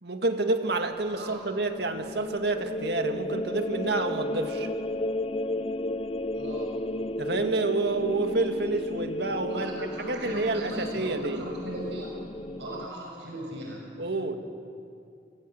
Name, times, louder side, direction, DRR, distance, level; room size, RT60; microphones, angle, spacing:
voice 1, 0.0-4.7 7.2-11.4 14.0-14.4, right 2 dB, 65° right, 6 dB, 1.9 m, -29 dB
sound 1, 0.9-12.9, left 1 dB, 35° left, 0.7 m, -34 dB
voice 2, 1.1-1.4 6.3-6.9 9.5-12.2 12.6-13.9, right 1 dB, 85° right, -1 dB, 6.4 m, -38 dB
30.0 x 24.0 x 7.8 m, 2.5 s
head